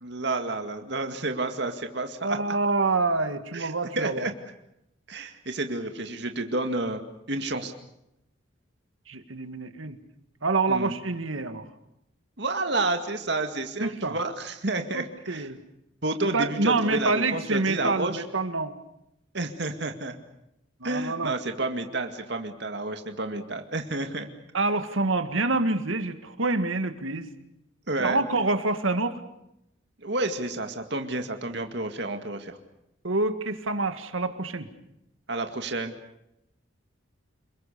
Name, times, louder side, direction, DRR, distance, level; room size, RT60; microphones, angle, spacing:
voice 1, 0.0-2.4 3.5-4.3 5.1-7.0 7.3-7.7 10.7-11.0 12.4-15.5 16.0-18.2 19.3-20.2 20.8-24.3 27.9-28.2 30.0-32.6 35.3-35.9, right 2 dB, 60° right, 6 dB, 2.1 m, -30 dB
voice 2, 2.2-4.3 9.1-10.0 10.4-11.7 13.8-14.2 14.9-15.6 16.3-18.8 20.8-21.3 24.5-27.3 28.0-29.2 33.0-34.7, right 3 dB, 90° right, 9 dB, 2.0 m, -27 dB
29.0 x 21.5 x 6.9 m, 0.81 s
head